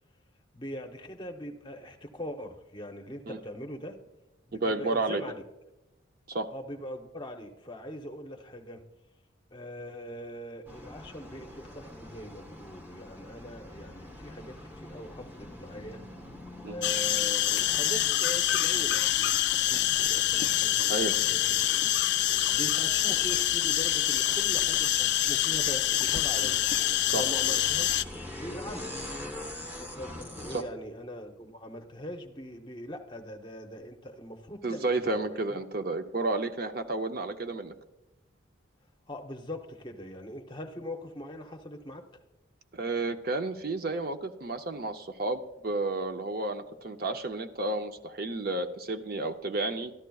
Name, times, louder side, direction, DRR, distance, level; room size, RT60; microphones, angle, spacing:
voice 1, 0.5-4.0 4.5-5.4 6.5-8.8 9.5-16.0 16.7-21.6 22.1-28.9 29.6-35.4 39.1-42.2, equal, 25° left, 4 dB, 0.7 m, -41 dB
voice 2, 4.5-5.2 6.3-6.5 16.6-16.8 20.9-21.1 27.1-27.2 30.5-30.6 34.6-37.7 42.7-49.9, right 2 dB, 50° right, 7 dB, 0.6 m, -31 dB
sound 1, 10.7-30.6, left 1 dB, 10° right, 1.0 m, -45 dB
sound 2, 16.8-28.0, left 13 dB, 55° left, 0.3 m, -26 dB
13.5 x 11.5 x 2.3 m, 1.0 s
head